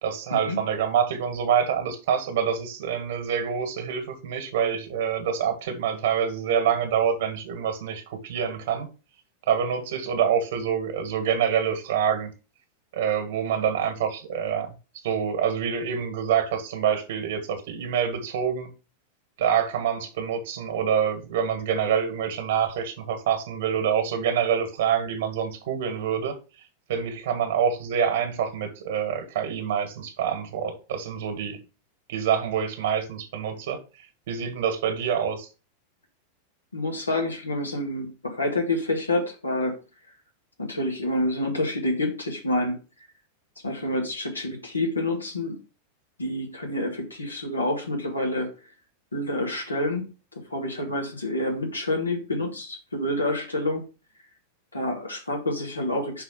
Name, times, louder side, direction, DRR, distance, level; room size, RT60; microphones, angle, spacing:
voice 1, 0.0-8.9 9.5-12.3 12.9-14.7 15.0-18.7 19.4-26.4 26.9-31.6 32.1-35.5, right 8 dB, 55° right, 1.5 m, -26 dB
voice 2, 36.7-39.7 40.6-42.8 43.6-45.6 46.2-48.5 49.1-50.1 50.5-53.8 54.7-56.2, left 1 dB, 80° left, 2.0 m, -28 dB
5.6 x 4.1 x 5.5 m
figure-of-eight pair, 90°, 0 cm